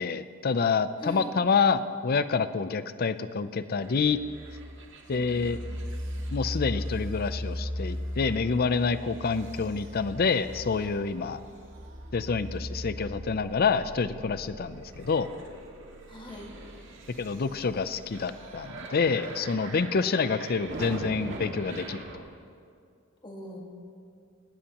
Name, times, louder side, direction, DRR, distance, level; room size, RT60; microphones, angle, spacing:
voice 1, 0.0-4.2 5.1-5.6 6.3-11.4 12.1-15.3 17.2-22.0, left 5 dB, 45° left, 13 dB, 0.5 m, -27 dB
voice 2, 1.0-1.3 11.5-11.7 16.1-16.5 23.2-23.6, equal, 20° left, 0 dB, 1.7 m, -42 dB
sound 1, 3.8-22.2, equal, 60° right, 2.0 m, -39 dB
19.5 x 17.5 x 3.0 m, 2.3 s
head